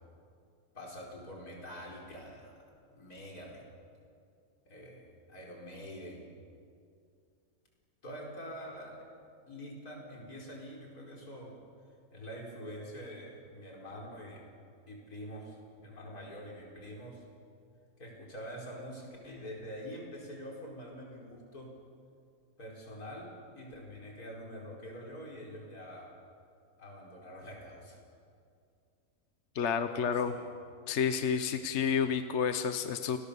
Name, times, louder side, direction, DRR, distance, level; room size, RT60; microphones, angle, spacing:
voice 1, 0.7-2.5 2.9-3.6 4.7-6.3 8.0-9.1 9.4-11.6 12.1-14.4 14.9-17.2 18.0-21.7 22.6-26.1 26.8-28.0 29.9-30.5 31.1-31.2 31.5-31.7, equal, 75° left, -1 dB, 5.3 m, -46 dB
voice 2, 29.5-30.3 30.9-33.2, left 7 dB, 55° left, 9 dB, 1.1 m, -30 dB
29.0 x 20.0 x 6.9 m, 2.3 s
omnidirectional pair, 1.6 m